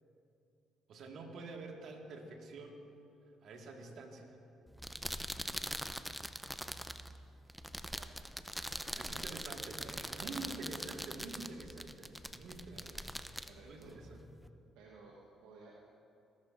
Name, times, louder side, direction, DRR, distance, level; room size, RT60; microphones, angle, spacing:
voice 1, 0.9-2.8 3.4-4.4 9.0-13.0 13.7-14.2, right 3 dB, 65° right, 1 dB, 1.8 m, -47 dB
sound 1, 4.7-14.5, equal, ahead, 0.6 m, -43 dB
voice 2, 8.6-9.0 9.8-10.5 12.7-12.9 13.4-13.9 14.7-15.8, right 3 dB, 80° right, -4 dB, 1.2 m, -57 dB
19.5 x 12.0 x 2.6 m, 2.6 s
hypercardioid pair, 50°, 0 cm